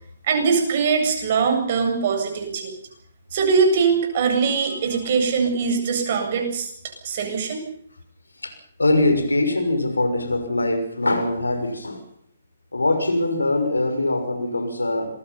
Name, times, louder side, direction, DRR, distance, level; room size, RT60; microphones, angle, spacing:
voice 1, 0.3-2.7 3.3-6.7 7.0-7.6, right 5 dB, 45° right, 7.9 m, -21 dB
voice 2, 8.8-12.1 12.7-15.2, left 2 dB, 80° left, 6.1 m, -22 dB
26.5 x 21.5 x 5.8 m
figure-of-eight pair, 130°, 0 cm